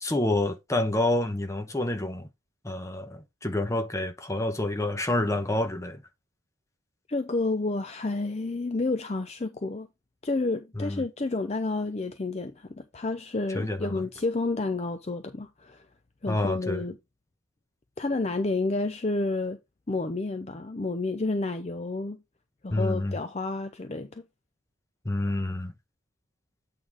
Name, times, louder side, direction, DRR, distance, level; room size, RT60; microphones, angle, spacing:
voice 1, 0.0-2.3 2.6-6.0 10.8-11.0 13.5-13.9 16.3-16.8 22.7-23.1 25.0-25.7, left 1 dB, 15° left, 1.0 m, -28 dB
voice 2, 7.1-9.9 10.2-15.8 16.2-17.0 18.0-19.6 19.9-22.2 22.6-24.2, left 3 dB, 30° left, 0.5 m, -30 dB
8.5 x 3.8 x 4.9 m
head